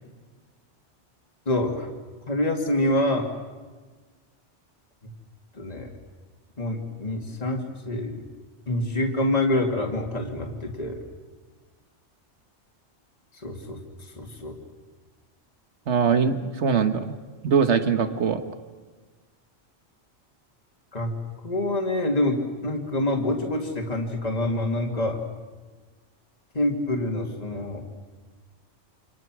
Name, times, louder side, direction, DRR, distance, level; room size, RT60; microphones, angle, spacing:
voice 1, 1.5-1.9 2.3-3.3 5.5-5.9 6.6-8.3 8.7-11.0 13.3-13.8 14.1-14.6 20.9-21.1 21.4-25.2 26.5-27.8, left 1 dB, 35° left, 2 dB, 2.5 m, -26 dB
voice 2, 15.9-17.1 17.4-18.4, right 6 dB, 80° right, 9 dB, 1.6 m, -22 dB
28.5 x 26.5 x 6.2 m, 1.4 s
omnidirectional pair, 1.2 m